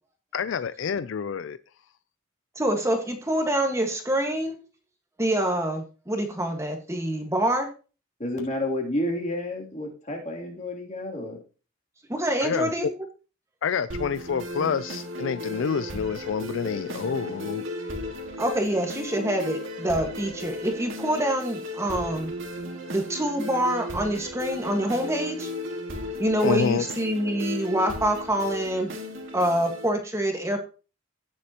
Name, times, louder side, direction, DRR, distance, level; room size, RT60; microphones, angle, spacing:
voice 1, 0.3-1.6 12.4-12.7 13.6-17.6 26.4-26.8, left 6 dB, 60° left, 14 dB, 0.4 m, -28 dB
voice 2, 2.5-4.5 5.2-7.7 12.1-12.9 18.4-22.3 22.9-25.5 26.2-28.9 29.3-30.6, right 1 dB, 15° right, 4 dB, 1.5 m, -26 dB
voice 3, 8.2-11.4, left 1 dB, 35° left, 0 dB, 2.8 m, -30 dB
sound 1, 13.9-29.9, left 1 dB, 65° right, 2.3 m, -35 dB
16.5 x 7.5 x 2.9 m, 0.35 s
head